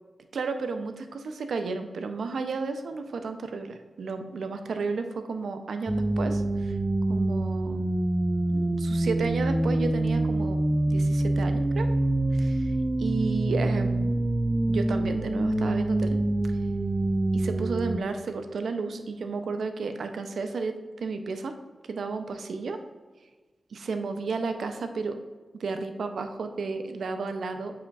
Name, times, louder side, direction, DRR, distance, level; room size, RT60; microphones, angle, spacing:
voice 1, 0.3-6.7 7.1-7.8 8.5-10.6 10.9-11.9 12.3-12.7 13.0-14.2 14.7-16.2 17.3-21.5 21.9-22.8 23.7-25.2 25.6-27.7, right 4 dB, 90° right, 7 dB, 0.5 m, -32 dB
sound 1, 5.9-18.0, right 1 dB, 25° right, 0.4 m, -26 dB
8.3 x 4.9 x 2.4 m, 1.3 s
wide cardioid pair, 75°, 0 cm